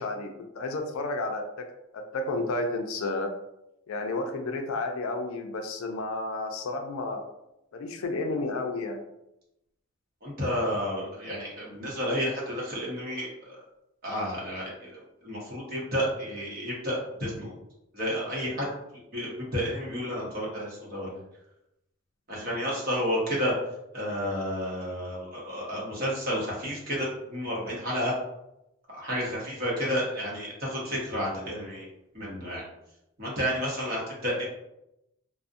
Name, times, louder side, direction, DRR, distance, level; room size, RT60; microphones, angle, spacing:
voice 1, 0.0-1.7 1.9-3.3 3.9-7.2 7.7-9.0, left 2 dB, 70° left, 4 dB, 0.3 m, -31 dB
voice 2, 10.2-13.6 14.0-14.9 15.2-17.5 17.9-18.7 19.1-21.1 22.3-23.5 23.9-28.1 28.9-31.9 32.1-32.6 33.2-34.4, equal, 45° right, -4 dB, 0.7 m, -31 dB
2.4 x 2.0 x 2.5 m, 0.87 s
head